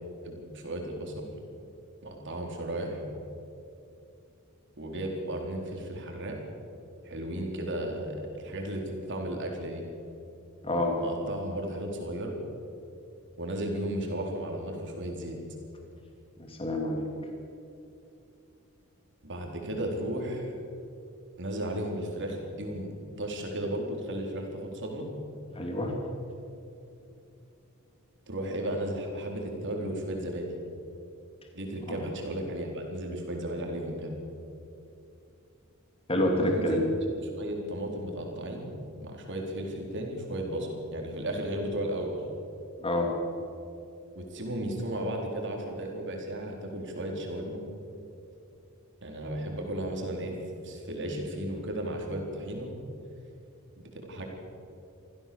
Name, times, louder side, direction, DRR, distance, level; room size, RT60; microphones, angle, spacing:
voice 1, 0.2-1.3 2.0-3.0 4.8-6.4 7.0-9.8 11.0-12.3 13.4-15.4 19.2-20.5 21.4-25.1 28.3-30.6 31.5-34.1 36.3-36.8 37.2-38.7 39.0-42.2 44.1-47.6 49.0-50.3 50.6-52.7 53.9-54.2, right 1 dB, 55° right, 1 dB, 4.2 m, -34 dB
voice 2, 10.6-11.0 16.4-17.1 25.5-25.9 31.9-32.1 36.1-36.8 42.8-43.1, left 1 dB, 25° left, 1 dB, 2.7 m, -28 dB
25.5 x 15.5 x 7.1 m, 2.7 s
head